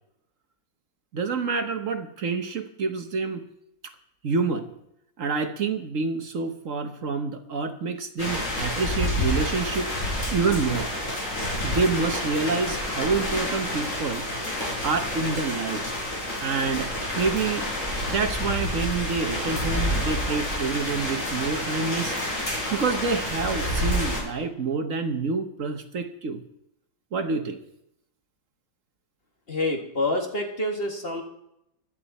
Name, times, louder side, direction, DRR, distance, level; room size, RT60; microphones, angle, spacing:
voice 1, 1.1-3.4 4.2-4.7 5.2-9.9 10.3-10.9 11.6-14.3 14.8-16.0 16.4-17.6 18.1-22.2 22.7-26.4 27.1-27.6, right 4 dB, 60° right, 7 dB, 1.4 m, -27 dB
sound 1, 8.2-24.2, left 1 dB, 60° left, 5.2 m, -29 dB
voice 2, 29.5-31.2, left 1 dB, 40° left, 1 dB, 2.1 m, -27 dB
16.0 x 12.0 x 4.2 m, 0.79 s
omnidirectional pair, 1.5 m